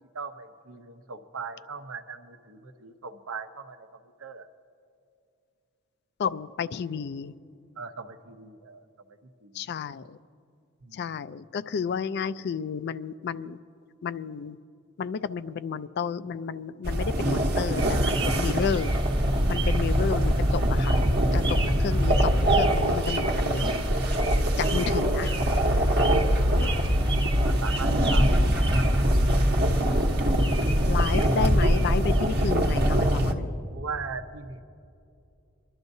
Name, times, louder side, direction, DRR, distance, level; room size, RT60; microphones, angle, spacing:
voice 1, 0.1-3.9 4.2-4.5 7.8-8.8 9.4-9.7 10.8-11.4 17.9-18.1 25.9-27.0 27.4-28.7 29.5-29.6 33.6-34.6, right 4 dB, 85° right, 7 dB, 0.8 m, -40 dB
voice 2, 6.2-7.3 9.5-10.2 10.9-13.6 14.0-14.6 15.0-18.9 19.5-21.0 21.3-23.8 24.6-25.4 30.9-33.5, left 6 dB, 55° left, 15 dB, 0.3 m, -31 dB
sound 1, 16.8-33.3, equal, 50° right, 1.0 m, -23 dB
sound 2, 17.8-33.0, right 3 dB, 20° right, 0.6 m, -38 dB
27.0 x 12.0 x 2.7 m, 2.5 s
head